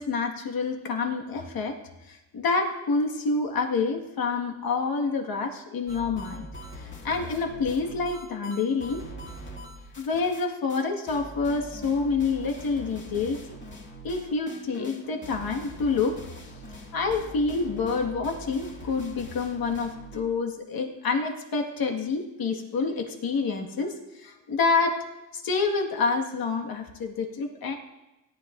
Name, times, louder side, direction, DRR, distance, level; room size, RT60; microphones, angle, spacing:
voice 1, 0.0-1.8 2.1-6.5 6.8-9.0 10.0-13.4 14.0-16.2 16.9-25.0 25.3-27.8, left 4 dB, 50° left, 2 dB, 1.8 m, -28 dB
sound 1, 5.9-10.4 10.7-10.8 11.1-20.3, equal, 25° left, 2.1 m, -42 dB
17.5 x 10.0 x 2.6 m, 0.99 s
cardioid pair, 120°, 45 cm